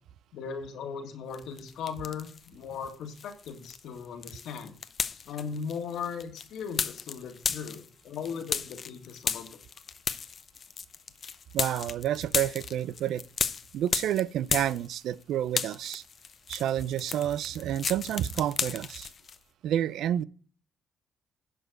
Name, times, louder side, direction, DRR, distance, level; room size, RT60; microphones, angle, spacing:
voice 1, 0.3-4.7 5.3-9.5, left 6 dB, 80° left, 2.0 m, -38 dB
sound 1, 1.3-2.5 2.8-15.2 15.5-19.4, left 6 dB, 50° left, 0.7 m, -35 dB
voice 2, 11.5-13.2 13.7-16.0 16.5-19.1 19.6-20.2, right 11 dB, 80° right, 0.5 m, -29 dB
11.0 x 5.2 x 6.4 m
cardioid pair, 90°, 0 cm